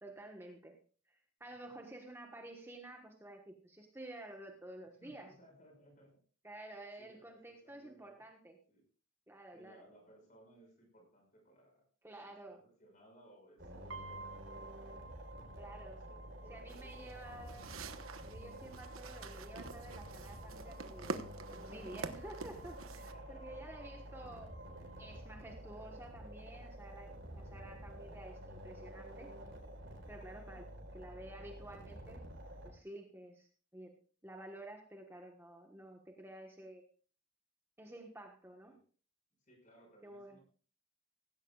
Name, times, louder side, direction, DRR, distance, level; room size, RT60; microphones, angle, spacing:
voice 1, 0.0-0.8 1.1-5.3 6.4-8.6 9.3-9.8 12.0-12.6 15.6-16.0 16.5-17.9 18.2-21.2 21.5-24.6 25.0-29.3 30.1-30.7 30.9-32.2 32.6-33.9 34.2-36.8 37.8-38.8 40.0-40.4, right 1 dB, 10° right, 2 dB, 1.3 m, -51 dB
voice 2, 5.0-6.2 7.0-8.2 8.7-8.8 9.5-11.8 12.2-15.3 15.6-17.2 22.9-23.8 25.5-25.6 30.3-30.6 38.6-38.8 39.4-40.4, equal, 40° left, 2 dB, 5.9 m, -63 dB
sound 1, 13.6-32.7, right 1 dB, 55° right, 4.2 m, -50 dB
sound 2, 13.9-25.9, right 3 dB, 75° right, 1.5 m, -56 dB
sound 3, 16.7-23.1, right 3 dB, 90° right, 1.1 m, -47 dB
16.5 x 16.0 x 2.4 m, 0.40 s
head